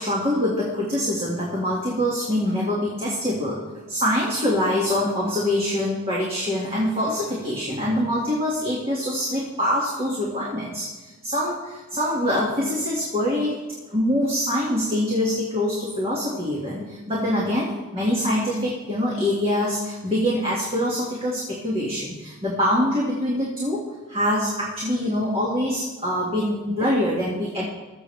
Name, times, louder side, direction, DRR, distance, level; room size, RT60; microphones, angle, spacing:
voice 1, 0.0-3.6 3.9-13.5 13.9-23.8 24.1-27.6, left 1 dB, 25° right, -5 dB, 2.1 m, -24 dB
21.5 x 7.6 x 3.4 m, 1.1 s
head